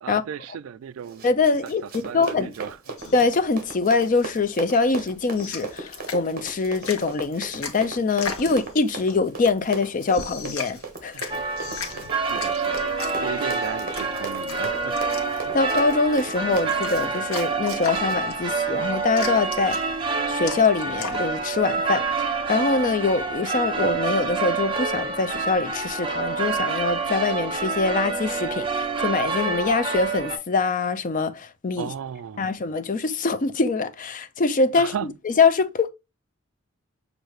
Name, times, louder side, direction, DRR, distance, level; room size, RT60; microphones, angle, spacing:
voice 1, 0.0-1.2 2.0-2.8 11.1-11.4 11.9-14.9 31.8-32.5 34.7-35.1, right 8 dB, 75° right, 0.3 m, -35 dB
Run, 1.0-18.2, right 3 dB, 45° right, 1.2 m, -38 dB
voice 2, 1.2-2.5 3.1-11.3 15.5-19.8 20.3-22.0 22.5-31.9 32.4-35.9, left 4 dB, 40° left, 0.5 m, -24 dB
sound 1, 3.0-21.3, left 4 dB, 85° left, 1.1 m, -38 dB
sound 2, 11.3-30.4, right 4 dB, 25° right, 0.8 m, -27 dB
6.4 x 2.6 x 3.1 m
head